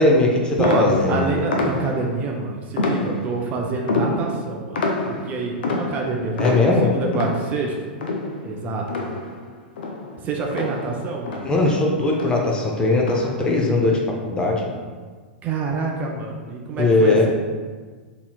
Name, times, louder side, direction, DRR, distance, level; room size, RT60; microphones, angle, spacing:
voice 1, 0.0-1.4 6.4-7.0 11.4-14.0 14.2-14.6 16.8-17.3, left 2 dB, 15° left, -1 dB, 0.6 m, -19 dB
sound 1, 0.6-2.2 2.8-3.5 3.9-9.5 9.8-11.8 12.1-12.5 13.0-13.5, left 3 dB, 70° left, 0.5 m, -27 dB
voice 2, 0.6-4.8 5.1-7.7 8.4-9.2 10.2-11.4 15.4-17.3, right 4 dB, 30° right, 0 dB, 0.4 m, -26 dB
4.0 x 2.8 x 2.2 m, 1.5 s
hypercardioid pair, 100°, 5 cm